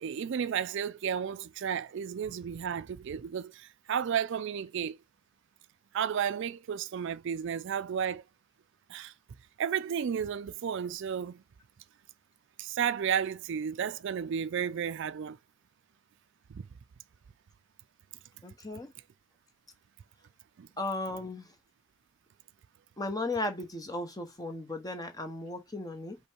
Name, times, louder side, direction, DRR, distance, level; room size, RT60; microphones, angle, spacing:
voice 1, 0.0-5.0 5.9-8.2 8.9-9.1 9.6-11.4 12.6-15.4 16.5-16.6 20.6-20.7, right 8 dB, 60° right, 0.4 m, -32 dB
voice 2, 18.4-18.9 20.8-21.5 23.0-26.2, left 2 dB, 20° left, 1.0 m, -36 dB
5.3 x 2.2 x 4.5 m
head